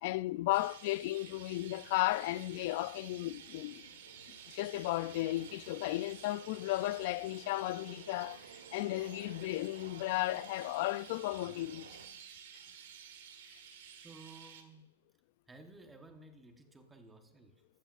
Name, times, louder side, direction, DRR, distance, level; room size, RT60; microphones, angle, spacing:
voice 1, 0.0-3.8 4.5-8.4 8.7-12.0, left 18 dB, 45° left, 0.4 m, -34 dB
Chirp tweet, 0.5-14.6, right 8 dB, 60° right, 1.5 m, -53 dB
sound 1, 1.2-12.1, right 5 dB, 85° right, 2.4 m, -56 dB
voice 2, 14.0-15.0 15.5-17.6, right 2 dB, 10° right, 1.1 m, -55 dB
15.0 x 13.0 x 2.5 m
hypercardioid pair, 150°, 0 cm